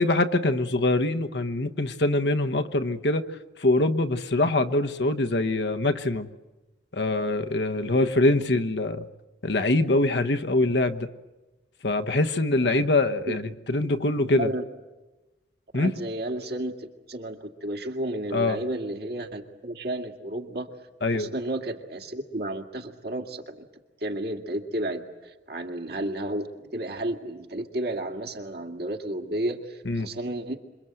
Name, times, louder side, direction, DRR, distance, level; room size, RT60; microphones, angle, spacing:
voice 1, 0.0-3.2 3.6-6.3 6.9-9.0 9.4-11.1 11.8-14.5 15.7-15.9 18.3-18.6 21.0-21.3 29.8-30.1, left 2 dB, 65° left, 8 dB, 1.1 m, -24 dB
voice 2, 14.3-14.6 15.7-20.7 21.1-23.6 24.0-26.5 26.7-30.6, right 1 dB, 60° right, 3 dB, 2.3 m, -32 dB
27.0 x 24.0 x 7.9 m, 1.1 s
head